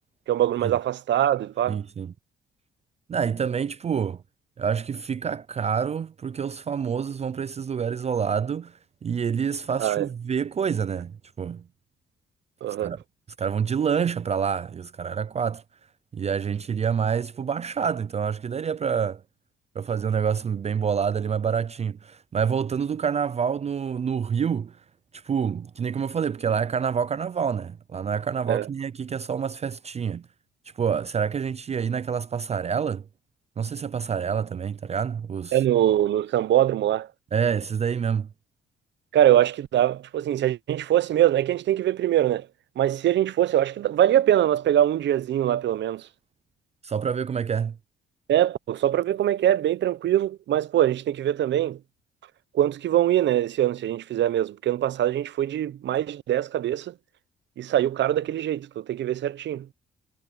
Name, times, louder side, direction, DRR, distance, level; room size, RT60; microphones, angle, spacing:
voice 1, 0.3-1.8 9.8-10.1 12.6-12.9 28.5-28.7 35.5-37.1 39.1-42.5 42.8-46.1 48.3-51.8 52.5-56.9 57.6-59.7, right 12 dB, 65° right, 0.8 m, -23 dB
voice 2, 1.7-2.1 3.1-4.2 4.6-11.6 12.8-13.0 13.4-15.6 16.1-19.2 19.8-24.8 25.1-30.3 30.8-33.0 33.6-35.6 37.3-38.3 46.8-47.8, right 7 dB, 35° right, 0.4 m, -27 dB
cardioid pair, 90°, 20 cm